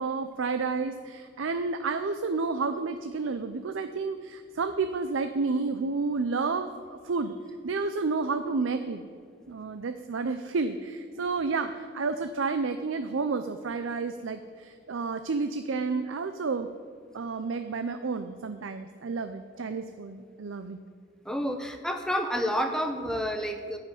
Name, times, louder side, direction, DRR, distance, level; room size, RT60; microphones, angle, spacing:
voice 1, 0.0-7.4 7.6-9.1 9.5-16.7 17.1-20.8, right 4 dB, 75° right, 9 dB, 0.5 m, -30 dB
voice 2, 21.3-23.8, equal, 5° left, 5 dB, 0.7 m, -29 dB
13.5 x 5.7 x 9.1 m, 2.2 s
head